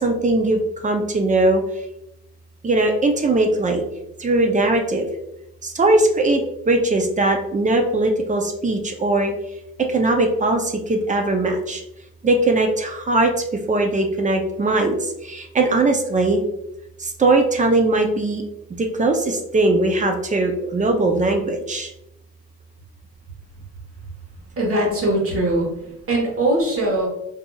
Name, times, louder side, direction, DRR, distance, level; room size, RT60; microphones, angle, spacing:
voice 1, 0.0-1.6 2.6-3.8 4.2-5.1 5.6-9.3 9.9-11.8 12.2-13.3 13.7-15.0 15.2-16.4 17.0-18.5 18.8-21.9, right 2 dB, 25° right, 4 dB, 0.5 m, -20 dB
voice 2, 24.6-25.7 26.1-27.1, right 1 dB, 45° right, -1 dB, 1.3 m, -20 dB
3.9 x 2.7 x 2.3 m, 0.85 s
cardioid pair, 90°, 30 cm